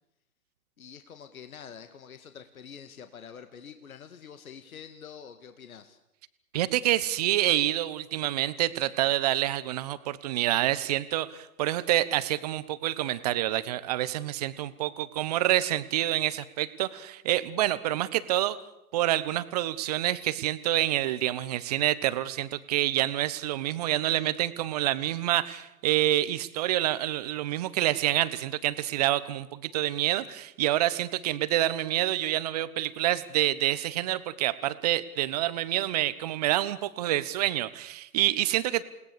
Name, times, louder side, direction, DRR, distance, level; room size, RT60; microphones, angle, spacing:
voice 1, 0.8-6.0, left 7 dB, 60° left, 8 dB, 2.0 m, -46 dB
voice 2, 6.5-18.6 18.9-38.8, right 14 dB, 25° right, 15 dB, 1.0 m, -27 dB
29.0 x 19.0 x 6.8 m, 0.86 s
figure-of-eight pair, 135°, 48 cm